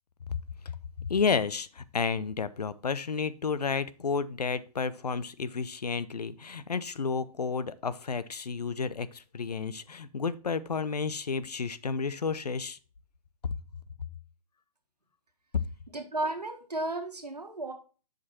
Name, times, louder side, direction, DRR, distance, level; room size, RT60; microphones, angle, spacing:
voice 1, 1.0-12.8, left 5 dB, 85° left, 16 dB, 0.6 m, -31 dB
voice 2, 15.9-17.7, right 2 dB, 90° right, 4 dB, 1.7 m, -33 dB
6.8 x 5.3 x 4.2 m, 0.35 s
figure-of-eight pair, 125°, 20 cm